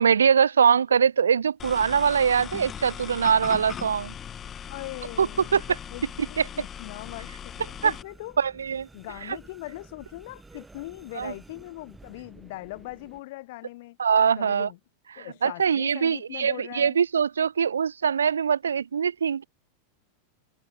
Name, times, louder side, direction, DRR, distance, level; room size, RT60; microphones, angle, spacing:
voice 1, 0.0-4.1 5.2-5.3 5.5-5.8 6.4-6.5 7.8-7.9 8.4-8.9 11.2-11.3 14.0-14.7 15.2-19.4, right 7 dB, 70° right, 0.3 m, -22 dB
sound 1, 1.6-8.0, left 8 dB, 25° left, 3.6 m, -39 dB
voice 2, 4.7-5.6 5.9-6.0 6.3-7.5 7.8-8.4 8.9-14.0 14.4-14.8 15.2-17.0, left 20 dB, 50° left, 3.1 m, -40 dB
sound 2, 7.5-13.2, right 3 dB, 10° right, 6.8 m, -52 dB
figure-of-eight pair, 90°, 0 cm